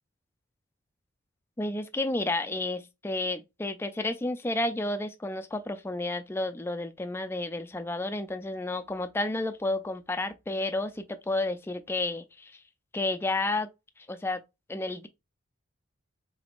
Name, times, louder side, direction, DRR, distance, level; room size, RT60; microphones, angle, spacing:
voice 1, 1.6-12.6 12.9-13.7 14.0-14.4 14.7-15.1, left 2 dB, 10° left, 0.3 m, -31 dB
3.9 x 3.4 x 2.4 m
head